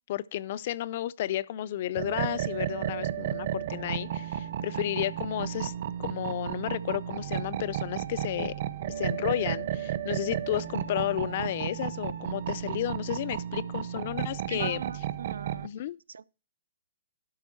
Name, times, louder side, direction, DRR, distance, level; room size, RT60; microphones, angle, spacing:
voice 1, 0.1-5.7 6.0-8.6 9.0-14.8 15.6-16.0, left 12 dB, 40° left, 0.4 m, -32 dB
sound 1, 1.9-15.7, right 10 dB, 40° right, 0.7 m, -33 dB
voice 2, 14.5-15.7 16.1-16.2, right 6 dB, 85° right, 0.5 m, -39 dB
11.5 x 6.0 x 4.4 m
hypercardioid pair, 165°, 0 cm